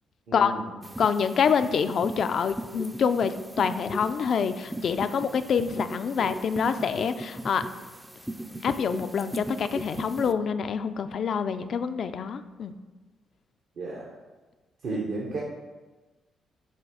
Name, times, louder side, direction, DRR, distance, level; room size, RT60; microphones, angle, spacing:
voice 1, 0.3-0.7 13.8-14.1 14.8-15.4, right 3 dB, 70° right, -5 dB, 1.1 m, -33 dB
sound 1, 0.8-10.3, right 1 dB, 10° right, 0.4 m, -38 dB
voice 2, 1.0-7.6 8.6-12.7, left 6 dB, 60° left, 10 dB, 0.3 m, -26 dB
7.6 x 2.8 x 4.8 m, 1.2 s
supercardioid pair, 70°, 0 cm